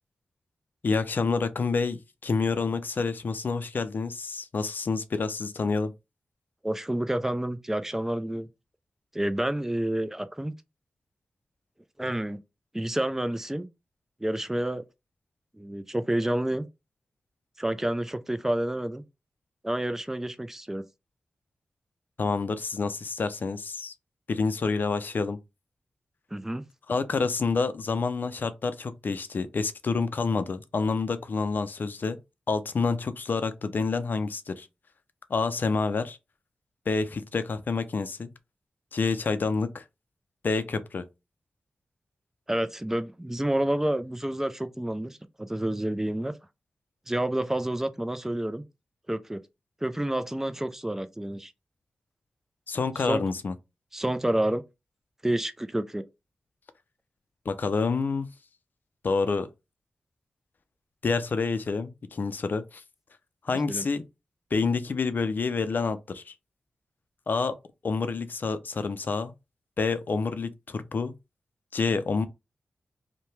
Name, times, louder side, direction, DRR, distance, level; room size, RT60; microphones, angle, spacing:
voice 1, 0.8-5.9 22.2-23.9 24.3-25.4 26.9-32.2 32.5-34.7 35.3-36.2 36.9-38.3 38.9-39.8 40.4-41.1 52.7-53.5 57.5-58.3 59.0-59.5 61.0-62.8 63.4-64.0 64.5-66.3 67.3-67.6 67.8-69.3 69.8-71.1 71.7-72.3, left 4 dB, 60° left, 0.4 m, -28 dB
voice 2, 6.6-8.5 9.1-10.5 12.0-12.4 12.7-13.7 14.2-14.8 15.6-16.6 17.6-19.0 19.6-20.8 26.3-26.6 42.5-46.3 47.1-48.6 49.1-49.4 49.8-51.5 53.0-53.2 53.9-54.6 55.2-56.0 63.7-63.8, right 1 dB, 10° right, 0.4 m, -29 dB
2.8 x 2.1 x 3.2 m
cardioid pair, 40°, 4 cm